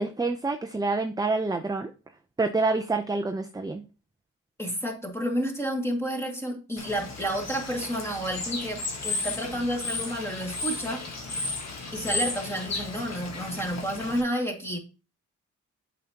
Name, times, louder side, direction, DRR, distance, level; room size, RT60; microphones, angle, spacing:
voice 1, 0.0-1.9 2.4-3.8, right 3 dB, 10° right, 0.5 m, -27 dB
voice 2, 4.6-11.1 11.9-14.8, equal, 10° left, 2.1 m, -30 dB
Bird / Water, 6.8-14.2, left 3 dB, 55° left, 1.6 m, -34 dB
7.6 x 5.2 x 2.9 m
cardioid pair, 70°, 32 cm